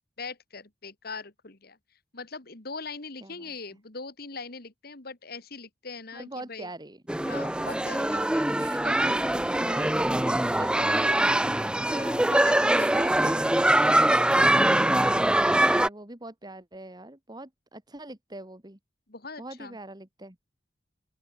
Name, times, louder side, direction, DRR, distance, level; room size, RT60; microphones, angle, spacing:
voice 1, 0.2-1.8 2.1-6.7 7.3-8.5 11.7-13.0 19.1-19.8, left 4 dB, 55° left, 2.2 m, -41 dB
voice 2, 3.2-3.5 6.1-7.0 8.0-11.7 12.2-18.8 19.4-20.4, right 1 dB, 20° right, 2.2 m, -42 dB
sound 1, 7.1-15.9, right 1 dB, 5° right, 0.4 m, -23 dB
open air
head